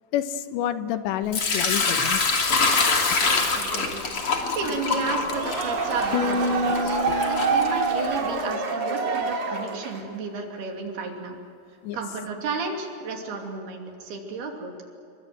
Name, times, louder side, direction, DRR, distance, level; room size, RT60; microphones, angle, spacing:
voice 1, 0.1-2.3 7.1-7.2 11.8-12.0, left 11 dB, 85° left, 10 dB, 3.3 m, -29 dB
Sink (filling or washing) / Liquid, 1.3-8.3, left 4 dB, 35° left, 3.0 m, -25 dB
voice 2, 3.2-4.1 4.5-11.4 11.9-14.7, right 4 dB, 65° right, 2 dB, 4.7 m, -33 dB
sound 1, 5.1-10.1, right 4 dB, 50° right, 3.9 m, -26 dB
sound 2, 6.1-9.5, left 3 dB, 65° left, 2.1 m, -30 dB
28.5 x 23.5 x 7.9 m, 2.5 s
omnidirectional pair, 5.0 m